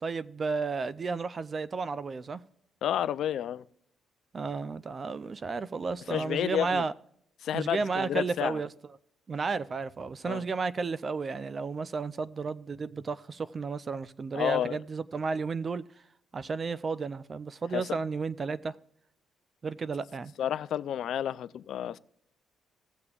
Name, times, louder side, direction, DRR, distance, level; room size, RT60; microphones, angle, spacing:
voice 1, 0.0-2.4 4.3-6.9 7.5-8.7 9.3-15.8 16.3-18.8 19.6-20.3, right 4 dB, 40° right, 0.4 m, -33 dB
voice 2, 2.8-3.6 6.1-6.9 7.4-8.6 10.2-10.4 14.4-14.8 17.7-18.0 20.4-22.0, left 10 dB, 70° left, 0.4 m, -30 dB
17.0 x 6.8 x 2.4 m
cardioid pair, 90°, 0 cm